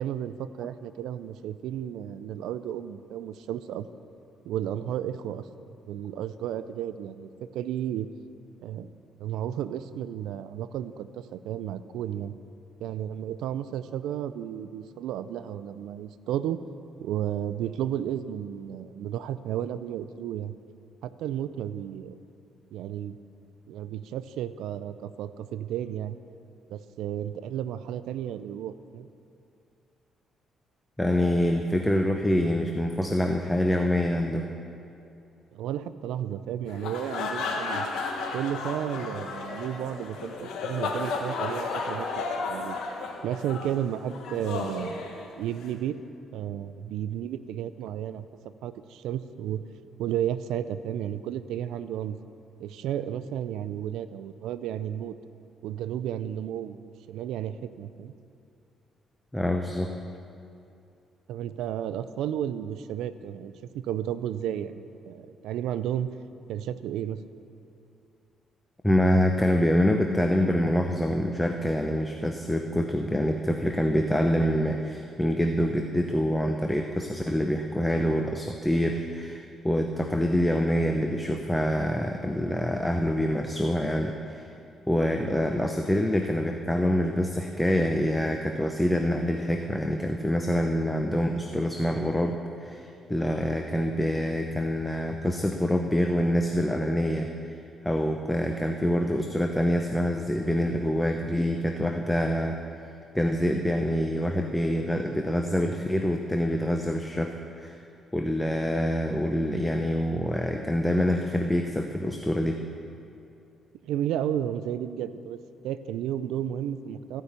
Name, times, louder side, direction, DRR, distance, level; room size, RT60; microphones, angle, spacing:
voice 1, 0.0-3.9 4.4-5.5 5.9-8.1 8.6-12.4 12.8-16.6 17.0-20.6 21.0-22.2 22.7-23.2 23.7-26.2 26.7-29.1 35.5-37.9 38.3-42.8 43.2-45.1 45.4-46.0 46.3-48.3 48.6-49.7 50.0-52.2 52.6-55.2 55.6-56.8 57.1-58.1 61.3-66.1 66.5-67.2 113.8-115.4 115.6-117.2, right 10 dB, 85° right, 13 dB, 0.4 m, -33 dB
voice 2, 31.0-34.5 59.3-60.0 68.8-84.5 84.9-97.5 97.8-102.6 102.8-107.8 108.1-112.6, equal, 5° left, 4 dB, 0.7 m, -26 dB
sound 1, 36.7-45.7, left 4 dB, 85° left, 1.4 m, -33 dB
15.0 x 5.8 x 8.1 m, 2.6 s
cardioid pair, 90°, 0 cm